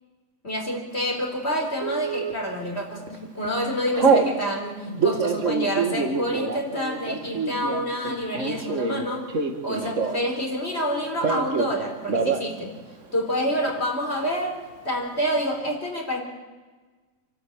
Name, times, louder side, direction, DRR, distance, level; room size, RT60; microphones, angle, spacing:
voice 1, 0.4-9.3 9.6-12.7 13.1-14.6 14.8-16.2, equal, 40° left, 0 dB, 4.4 m, -28 dB
Telephone, 1.8-2.3 2.9-3.2 3.4-4.3 4.9-10.4 10.6-11.7 12.0-12.5 12.8-12.9 13.1-13.7, right 4 dB, 50° right, 2.0 m, -25 dB
28.0 x 12.5 x 8.7 m, 1.3 s
omnidirectional pair, 1.7 m